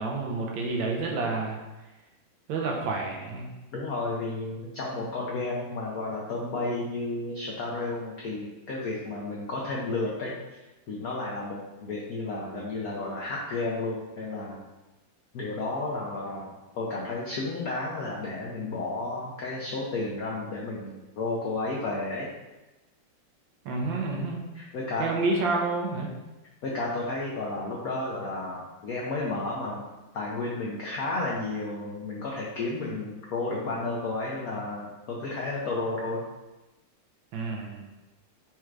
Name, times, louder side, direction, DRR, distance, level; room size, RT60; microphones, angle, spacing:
voice 1, 0.0-1.6 2.5-3.5 23.6-24.4 25.0-26.1 37.3-37.8, right 3 dB, 70° right, 0 dB, 1.3 m, -29 dB
voice 2, 3.7-10.3 10.9-14.6 15.3-22.3 24.5-25.1 26.6-29.8 30.1-36.2, left 2 dB, 80° left, -4 dB, 0.8 m, -32 dB
4.3 x 2.5 x 4.5 m, 1.1 s
omnidirectional pair, 2.3 m